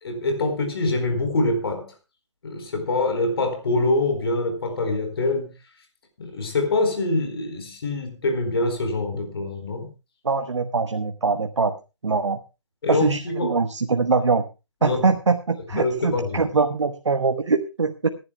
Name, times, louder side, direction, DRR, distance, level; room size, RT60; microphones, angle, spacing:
voice 1, 0.0-1.9 2.4-5.5 6.2-9.9 12.8-13.5 14.8-15.1 15.8-16.4, left 2 dB, 55° left, 4.3 m, -25 dB
voice 2, 10.2-11.7 12.0-12.4 12.9-14.5 14.8-18.1, right 4 dB, 70° right, 1.3 m, -23 dB
26.0 x 11.0 x 2.3 m
figure-of-eight pair, 140°, 16 cm